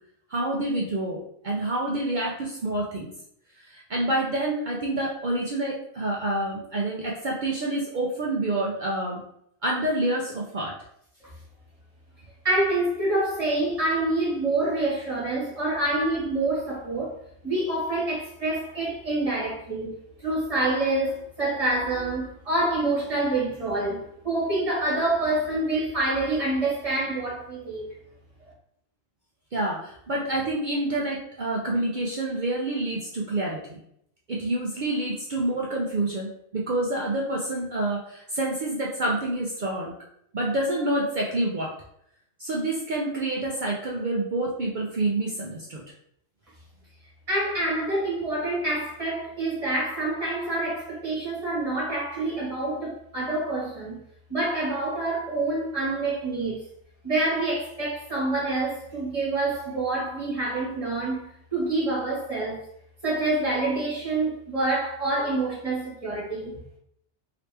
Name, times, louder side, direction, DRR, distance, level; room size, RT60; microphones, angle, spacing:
voice 1, 0.3-3.1 3.6-9.2 9.6-10.7 29.5-33.8 34.3-39.9 40.3-41.7 42.4-45.8, right 1 dB, 55° right, 0.5 m, -28 dB
voice 2, 12.4-17.1 17.4-19.9 20.2-27.9 47.3-54.0 54.3-56.6 57.0-62.6 63.0-66.6, right 2 dB, 30° right, 1.2 m, -27 dB
3.0 x 2.9 x 3.3 m
omnidirectional pair, 1.3 m